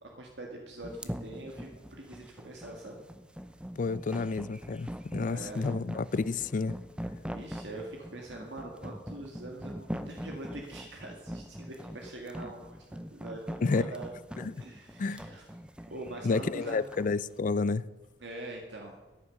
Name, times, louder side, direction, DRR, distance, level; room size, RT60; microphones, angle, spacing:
voice 1, 0.0-3.0 5.3-5.7 7.2-14.1 14.6-15.4 15.9-16.8 18.2-19.0, right 2 dB, 85° right, 1.9 m, -43 dB
sound 1, 0.8-17.1, equal, 5° right, 0.7 m, -42 dB
voice 2, 3.8-6.8 13.6-13.9 14.4-14.5 15.0-15.2 16.2-17.9, left 4 dB, 45° left, 0.4 m, -30 dB
14.5 x 10.0 x 6.5 m
head